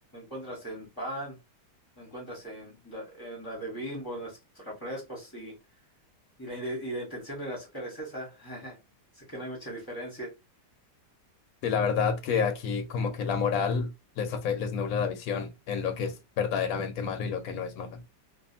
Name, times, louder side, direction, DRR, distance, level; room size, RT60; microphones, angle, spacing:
voice 1, 0.1-1.4 2.0-5.6 6.4-8.8 9.1-10.3, right 1 dB, 20° left, 0.5 m, -38 dB
voice 2, 11.6-18.0, left 6 dB, 70° left, 0.8 m, -29 dB
2.6 x 2.4 x 2.6 m
omnidirectional pair, 1.9 m